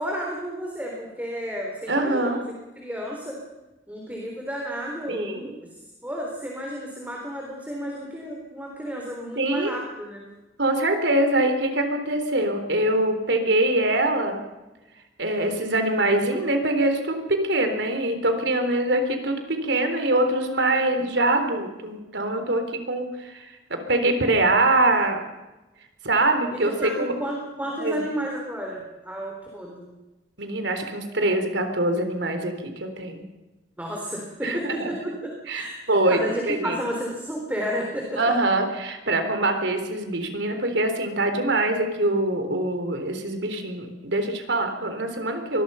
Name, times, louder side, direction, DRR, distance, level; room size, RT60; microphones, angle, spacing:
voice 1, 0.0-2.4 2.8-3.4 3.9-5.5 6.0-10.2 26.5-29.9 33.8-38.2, equal, 10° right, -1 dB, 3.9 m, -32 dB
voice 2, 1.9-2.4 5.1-5.5 9.4-9.7 10.6-14.4 15.2-25.2 26.0-27.1 27.8-28.0 30.4-33.2 34.4-34.9 35.5-36.8 38.2-45.6, right 2 dB, 85° right, 6 dB, 3.8 m, -24 dB
24.0 x 21.0 x 5.7 m, 1.1 s
head